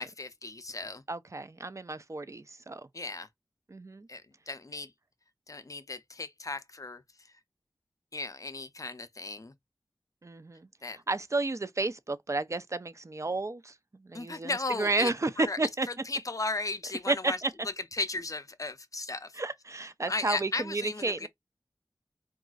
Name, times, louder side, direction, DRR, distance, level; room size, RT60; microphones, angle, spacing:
voice 1, 0.0-1.0 2.9-3.3 4.1-4.9 5.5-7.0 8.1-9.5 10.8-11.0 14.1-15.1 15.4-15.6 15.9-17.4 17.9-19.3 20.1-21.3, left 3 dB, 50° left, 0.5 m, -36 dB
voice 2, 1.1-2.9 3.7-4.1 10.2-10.7 11.1-13.7 14.0-15.9 17.1-17.5 19.4-21.3, right 3 dB, 45° right, 0.4 m, -31 dB
3.9 x 2.3 x 2.3 m
wide cardioid pair, 40°, 7 cm